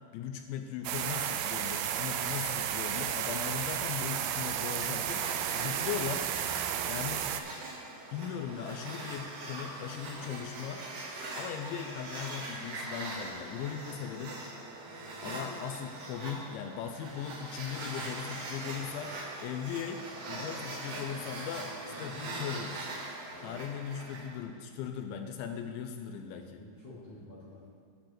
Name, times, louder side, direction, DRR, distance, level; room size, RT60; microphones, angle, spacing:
voice 1, 0.1-6.3 6.9-7.2 8.1-10.9 11.4-14.4 15.2-19.2 19.4-21.7 22.0-22.8 23.4-26.6, left 8 dB, 85° left, 6 dB, 2.7 m, -38 dB
sound 1, 0.8-7.4, right 10 dB, 90° right, 2.5 m, -33 dB
sound 2, 5.0-24.4, right 2 dB, 65° right, 3.3 m, -42 dB
voice 2, 26.3-27.7, left 1 dB, 55° left, -9 dB, 3.2 m, -50 dB
10.5 x 4.5 x 7.4 m, 2.3 s
omnidirectional pair, 5.6 m